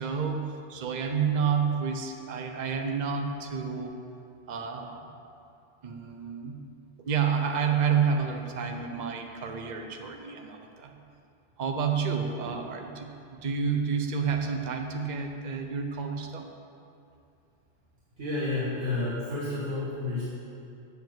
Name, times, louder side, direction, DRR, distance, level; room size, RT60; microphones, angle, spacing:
voice 1, 0.0-3.9 4.5-5.1 5.8-6.6 7.0-10.9 11.6-16.5, right 6 dB, 45° right, 4 dB, 0.8 m, -29 dB
voice 2, 18.2-20.3, left 2 dB, 90° right, -9 dB, 2.2 m, -31 dB
7.4 x 7.1 x 7.8 m, 2.6 s
omnidirectional pair, 1.2 m